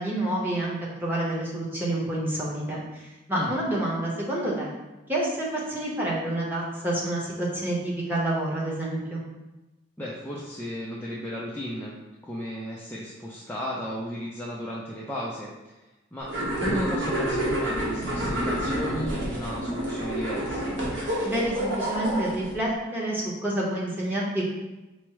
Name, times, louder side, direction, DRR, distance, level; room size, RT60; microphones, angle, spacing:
voice 1, 0.0-3.0 3.3-4.7 5.1-9.2 21.2-24.4, right 1 dB, 10° right, -5 dB, 0.8 m, -28 dB
voice 2, 10.0-12.0 12.2-15.5 16.1-16.3 16.6-20.7, equal, 10° left, -6 dB, 0.4 m, -34 dB
sound 1, 16.3-22.5, right 1 dB, 65° right, 1.1 m, -28 dB
4.4 x 2.0 x 4.6 m, 1.1 s
head